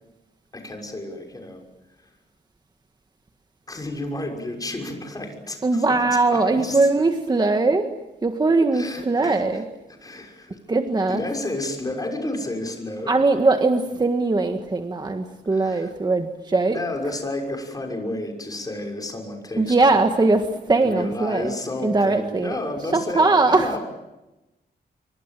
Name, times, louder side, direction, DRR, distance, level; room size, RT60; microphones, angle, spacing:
voice 1, 0.5-1.6 2.0-2.1 3.7-6.0 6.3-6.9 8.7-9.6 10.0-10.6 11.1-13.1 15.5-15.9 16.7-20.1 20.7-23.8, left 2 dB, 20° left, 2 dB, 6.2 m, -31 dB
voice 2, 5.6-7.9 8.2-9.6 10.7-11.2 13.1-16.8 19.6-21.5 21.8-22.6 22.9-23.8, right 3 dB, 25° right, 6 dB, 1.6 m, -20 dB
28.0 x 23.5 x 7.7 m, 0.99 s
wide cardioid pair, 155°, 17 cm